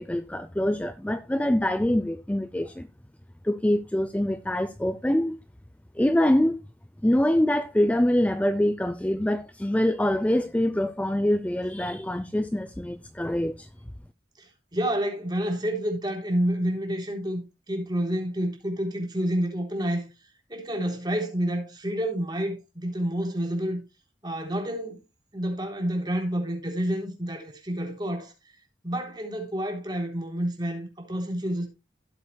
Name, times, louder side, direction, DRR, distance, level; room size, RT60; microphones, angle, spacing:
voice 1, 0.0-2.9 3.4-5.4 6.0-6.6 7.0-13.7, left 1 dB, 10° left, 0.4 m, -24 dB
voice 2, 14.4-17.4 17.7-20.1 20.5-23.8 24.2-25.0 25.3-28.3 28.8-31.7, right 1 dB, 25° right, 3.6 m, -29 dB
16.5 x 8.0 x 2.2 m
head